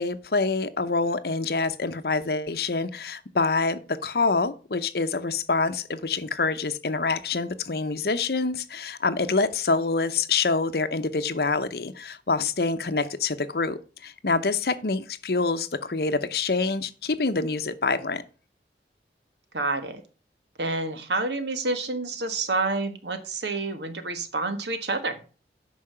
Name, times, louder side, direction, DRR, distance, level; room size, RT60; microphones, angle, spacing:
voice 1, 0.0-18.2, left 4 dB, 60° left, 12 dB, 0.8 m, -26 dB
voice 2, 19.5-20.0 20.6-25.2, right 3 dB, 75° right, 8 dB, 1.5 m, -28 dB
8.7 x 5.7 x 5.6 m, 0.36 s
head